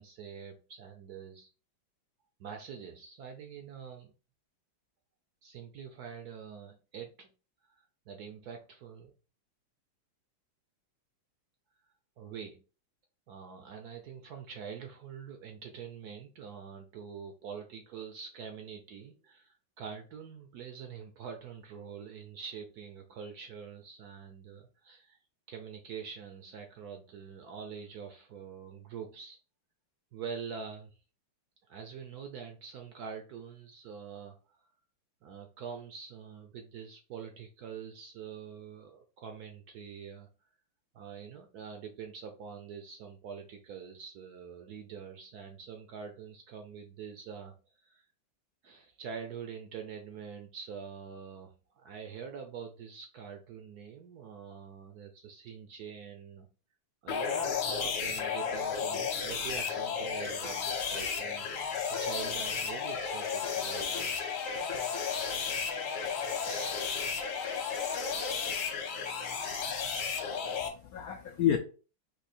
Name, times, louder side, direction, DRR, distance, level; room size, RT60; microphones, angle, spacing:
voice 1, 0.0-1.5 2.4-4.1 5.4-7.3 7.7-9.1 12.2-12.6 13.3-25.2 25.5-29.4 30.1-31.0 31.7-34.6 35.2-40.3 40.9-48.1 48.6-56.5 57.0-61.5 61.9-64.4 66.4-66.8, right 6 dB, 70° right, 5 dB, 0.9 m, -45 dB
sound 1, 57.1-70.7, left 6 dB, 65° left, 1.4 m, -33 dB
voice 2, 70.1-71.6, left 10 dB, 85° left, 5 dB, 0.7 m, -31 dB
4.4 x 2.8 x 4.1 m, 0.35 s
omnidirectional pair, 2.2 m